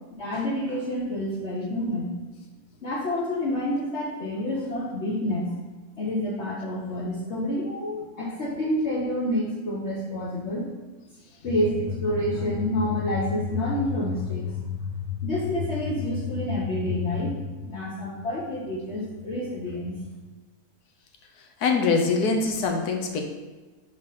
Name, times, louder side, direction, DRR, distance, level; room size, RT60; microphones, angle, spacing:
voice 1, 0.2-2.1 2.8-5.5 6.0-10.7 11.4-19.9, left 1 dB, 50° left, -7 dB, 1.3 m, -28 dB
voice 2, 21.6-23.2, left 4 dB, 85° left, 3 dB, 1.4 m, -23 dB
4.8 x 4.3 x 5.8 m, 1.3 s
omnidirectional pair, 1.6 m